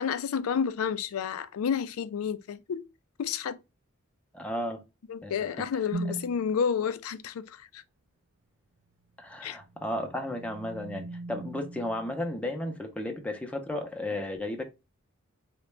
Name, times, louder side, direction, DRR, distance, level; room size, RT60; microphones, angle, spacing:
voice 1, 0.0-2.9 3.2-3.6 5.1-7.8 9.4-9.6, left 7 dB, 75° left, 0.4 m, -30 dB
voice 2, 4.3-4.8 5.2-5.3 9.2-14.6, left 1 dB, 5° left, 0.4 m, -34 dB
sound 1, 5.9-6.5 9.3-12.8, right 2 dB, 85° right, 0.4 m, -40 dB
3.8 x 2.1 x 3.2 m
head